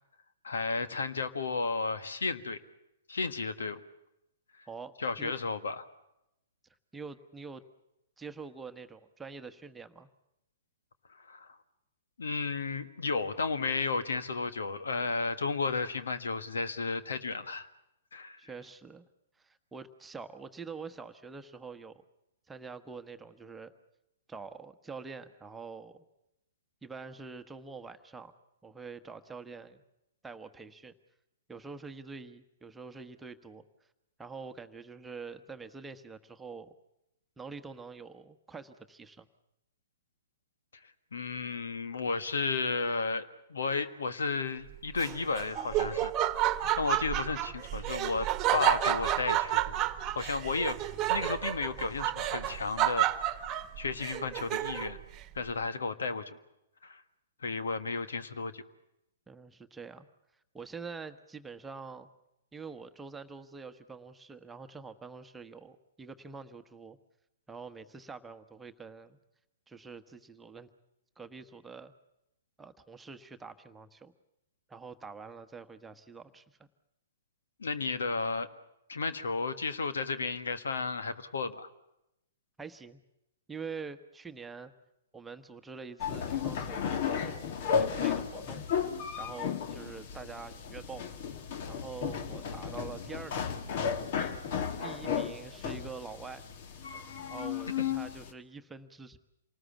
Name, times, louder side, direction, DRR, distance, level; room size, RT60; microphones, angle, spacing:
voice 1, 0.4-2.6 3.1-3.8 5.0-5.8 11.2-11.6 12.2-17.7 18.1-18.4 41.1-43.2 43.5-46.1 46.7-48.3 48.5-49.8 50.1-50.8 51.1-53.4 53.8-55.0 55.3-56.4 56.8-57.0 57.4-58.6 77.6-78.5 78.9-81.7 97.8-97.9, left 4 dB, 75° left, 11 dB, 1.5 m, -33 dB
voice 2, 6.9-7.6 8.2-10.1 18.4-19.0 19.4-22.0 22.5-23.7 24.3-26.1 26.8-28.3 28.6-29.8 30.2-30.9 31.5-33.6 34.2-36.7 37.4-39.3 59.3-60.1 60.5-62.1 62.5-67.0 67.5-69.2 69.7-70.7 71.2-71.9 72.6-74.1 74.7-76.7 82.6-83.0 83.5-84.7 85.1-88.6 89.2-91.2 91.6-93.5 94.8-96.4 97.2-99.2, right 5 dB, 10° right, 8 dB, 1.2 m, -45 dB
Laughter, 45.0-55.0, right 13 dB, 25° right, 1.4 m, -30 dB
sound 1, 86.0-98.3, left 7 dB, 50° left, 1.8 m, -34 dB
27.5 x 19.5 x 7.2 m, 0.85 s
figure-of-eight pair, 115°, 0 cm